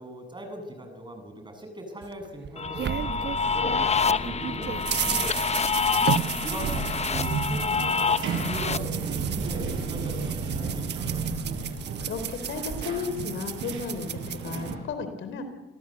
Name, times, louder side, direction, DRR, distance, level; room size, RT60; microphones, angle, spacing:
voice 1, 0.0-5.7 6.4-11.3, equal, 25° right, 5 dB, 7.9 m, -40 dB
sound 1, 2.0-3.9 4.2-14.7, right 9 dB, 60° right, 1.2 m, -34 dB
sound 2, 2.6-8.8, left 5 dB, 35° left, 0.9 m, -27 dB
sound 3, 2.7-14.8, right 5 dB, 80° right, 6.7 m, -34 dB
voice 2, 12.1-15.4, left 5 dB, 70° left, 9 dB, 3.7 m, -34 dB
28.5 x 18.0 x 8.1 m, 1.1 s
cardioid pair, 90°, 20 cm